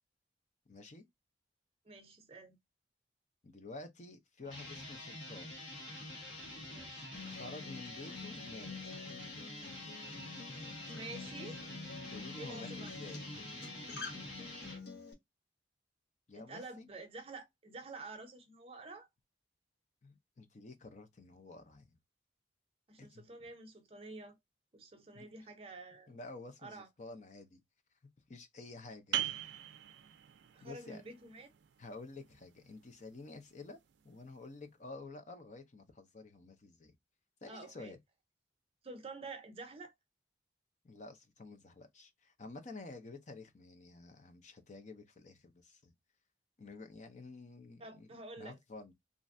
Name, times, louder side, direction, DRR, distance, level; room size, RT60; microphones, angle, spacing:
voice 1, 0.7-1.1 3.4-5.6 7.2-8.7 12.1-13.2 16.3-16.9 20.0-21.9 23.0-23.5 25.1-25.3 26.1-27.6 28.3-29.4 30.6-31.0 31.8-33.8 34.0-36.9 37.4-38.0 40.8-45.9 46.6-48.1 48.4-48.9, left 3 dB, 40° left, 0.6 m, -50 dB
voice 2, 1.9-2.6 6.7-7.1 10.9-11.6 12.4-12.9 16.3-19.1 22.9-24.4 24.7-26.1 26.6-26.9 30.5-31.5 37.5-37.9 38.8-39.9 47.8-48.6, right 3 dB, 30° right, 0.6 m, -49 dB
sound 1, 4.4-14.8, left 1 dB, 90° left, 1.4 m, -47 dB
Acoustic guitar, 7.1-15.1, left 4 dB, 60° left, 1.0 m, -49 dB
sound 2, 29.1-34.5, right 11 dB, 75° right, 0.4 m, -43 dB
3.1 x 2.5 x 2.5 m
head